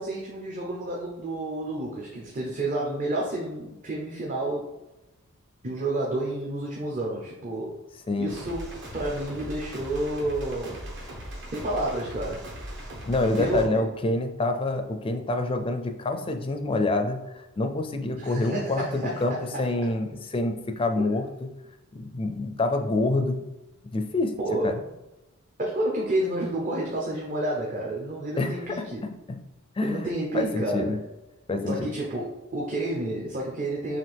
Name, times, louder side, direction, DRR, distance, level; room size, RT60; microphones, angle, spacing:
voice 1, 0.0-4.7 5.6-7.8 8.2-10.8 11.5-12.5 13.4-13.8 18.0-19.6 21.0-21.1 24.4-24.8 25.6-29.1 29.8-31.0 31.7-34.0, right 1 dB, 40° right, -2 dB, 0.7 m, -30 dB
sound 1, 8.3-13.7, equal, 55° right, 1.2 m, -39 dB
voice 2, 13.1-19.3 19.6-21.2 21.9-23.4 23.8-24.3 24.6-24.7 28.4-28.9 29.3-29.4 29.8-30.1 30.3-31.0 31.5-31.9, left 2 dB, 25° left, 6 dB, 0.4 m, -27 dB
6.0 x 2.5 x 3.4 m, 0.99 s
head